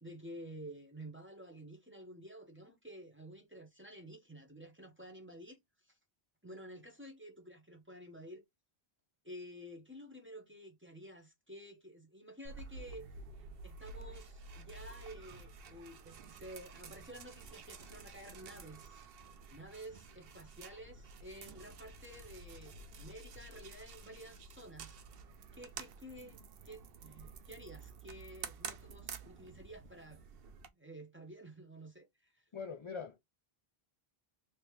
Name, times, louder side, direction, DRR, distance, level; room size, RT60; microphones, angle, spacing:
voice 1, 0.0-5.6 5.8-6.0 6.4-8.4 9.2-13.1 13.6-19.0 19.5-25.0 25.5-26.4 26.6-30.2 30.8-32.4, right 1 dB, 15° right, 0.8 m, -51 dB
sound 1, 12.4-30.7, right 5 dB, 70° right, 0.8 m, -50 dB
voice 2, 32.5-33.2, left 5 dB, 45° left, 0.4 m, -42 dB
3.1 x 3.0 x 3.2 m
omnidirectional pair, 1.0 m